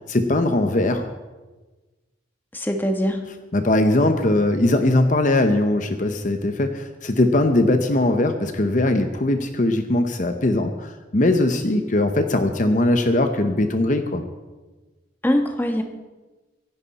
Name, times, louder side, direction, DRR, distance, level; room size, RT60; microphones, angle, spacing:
voice 1, 0.1-1.1 3.5-14.2, left 1 dB, 45° left, 7 dB, 0.9 m, -20 dB
voice 2, 2.5-3.2 15.2-15.8, equal, 10° left, 4 dB, 1.3 m, -22 dB
24.0 x 11.0 x 4.2 m, 1.2 s
head